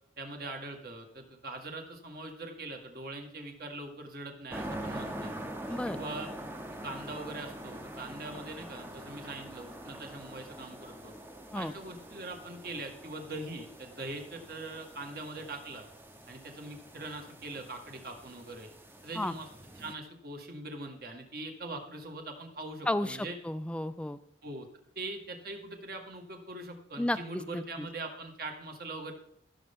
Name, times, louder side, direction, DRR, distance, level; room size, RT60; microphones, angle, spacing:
voice 1, 0.2-5.3 5.9-6.3 6.8-11.1 11.5-15.8 16.3-18.7 19.0-19.5 19.8-23.4 24.4-24.7 25.0-29.1, right 2 dB, 50° right, 3 dB, 1.8 m, -42 dB
sound 1, 4.5-19.9, right 1 dB, 10° right, 0.8 m, -44 dB
voice 2, 22.9-24.2 27.0-27.9, left 1 dB, 5° left, 13 dB, 0.3 m, -33 dB
16.0 x 6.9 x 3.7 m, 0.71 s
head